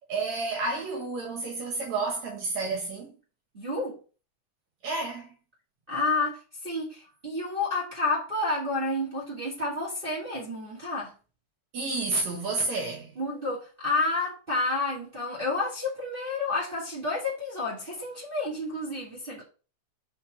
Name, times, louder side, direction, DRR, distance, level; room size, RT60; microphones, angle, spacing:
voice 1, 0.1-3.1 4.8-5.3 11.7-13.1, right 3 dB, 70° right, 2.4 m, -30 dB
voice 2, 3.5-3.9 5.9-6.4 6.6-11.1 13.2-19.4, left 2 dB, 20° right, 1.8 m, -30 dB
5.5 x 4.4 x 5.0 m
omnidirectional pair, 3.5 m